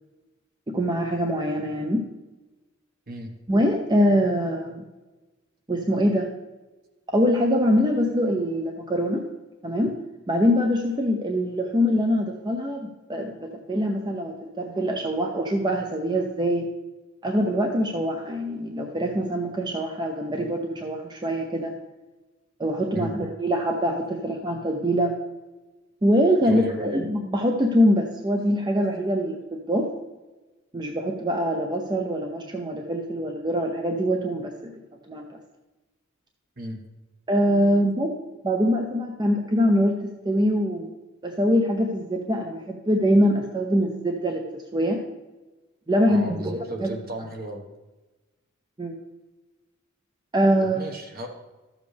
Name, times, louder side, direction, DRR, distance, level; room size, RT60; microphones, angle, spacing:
voice 1, 0.7-2.0 3.5-4.9 5.7-6.3 7.1-9.2 9.6-9.9 10.3-16.7 17.2-21.7 22.6-25.1 26.0-29.9 30.7-34.7 35.1-35.2 37.3-38.2 38.4-40.9 41.2-45.0 45.9-46.9 48.8-49.0 50.3-50.8, equal, 20° right, 2 dB, 0.6 m, -24 dB
voice 2, 26.4-26.8 36.6-36.8 46.1-47.6 50.6-51.3, right 1 dB, 45° right, 2 dB, 1.4 m, -34 dB
12.5 x 7.3 x 3.4 m, 1.1 s
head